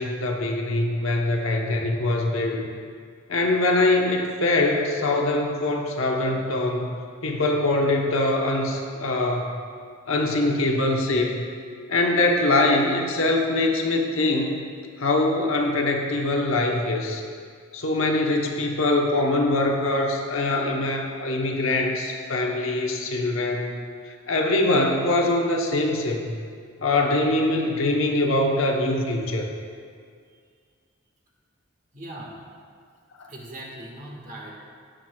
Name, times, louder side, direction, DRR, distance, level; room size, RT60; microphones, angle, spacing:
voice 1, 0.0-2.7 3.3-9.6 10.1-11.4 11.9-14.6 15.0-17.2 17.7-23.8 24.3-26.3 26.8-29.5 33.2-33.3, left 2 dB, 75° left, 1 dB, 1.0 m, -23 dB
voice 2, 31.9-32.3 33.3-34.5, right 1 dB, 40° right, -3 dB, 1.6 m, -39 dB
18.0 x 6.0 x 2.3 m, 2.1 s
head